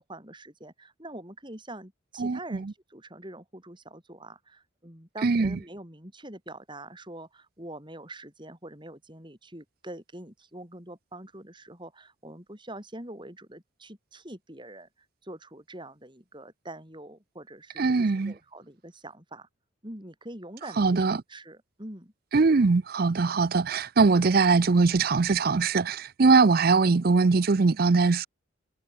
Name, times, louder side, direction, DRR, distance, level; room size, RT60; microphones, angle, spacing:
voice 1, 0.0-14.9 15.2-19.5 19.8-20.8 21.3-22.1, right 1 dB, 25° right, 5.8 m, -44 dB
voice 2, 2.2-2.7 5.2-5.6 17.8-18.3 20.8-21.2 22.3-28.3, right 4 dB, 50° right, 0.5 m, -22 dB
head